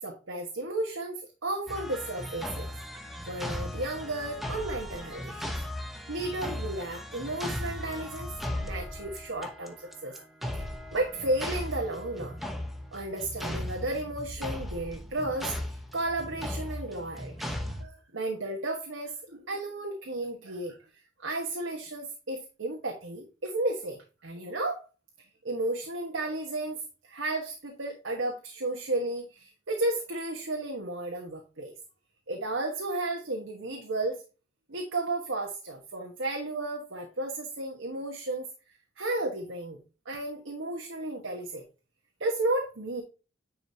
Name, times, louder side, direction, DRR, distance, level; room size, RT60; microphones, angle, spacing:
voice 1, 0.0-2.7 3.3-5.6 6.1-10.3 10.9-12.4 12.9-24.9 25.4-31.7 32.3-34.2 34.7-38.5 39.0-39.8 40.0-41.6 42.2-43.0, right 2 dB, 80° right, 2 dB, 1.4 m, -33 dB
sound 1, 1.7-17.8, left 1 dB, ahead, 0.9 m, -37 dB
10.0 x 5.0 x 2.8 m, 0.31 s
head